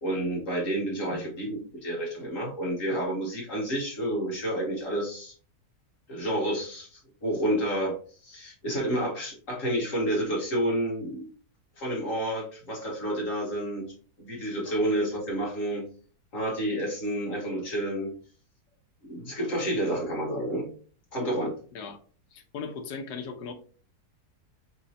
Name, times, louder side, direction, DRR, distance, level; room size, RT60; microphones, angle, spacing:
voice 1, 0.0-5.3 6.1-11.3 11.8-15.9 16.3-18.1 19.0-20.7 21.1-21.5, right 1 dB, 55° left, -3 dB, 2.0 m, -30 dB
voice 2, 22.3-23.5, left 5 dB, 85° left, 6 dB, 1.4 m, -37 dB
5.4 x 3.1 x 2.8 m, 0.40 s
omnidirectional pair, 1.7 m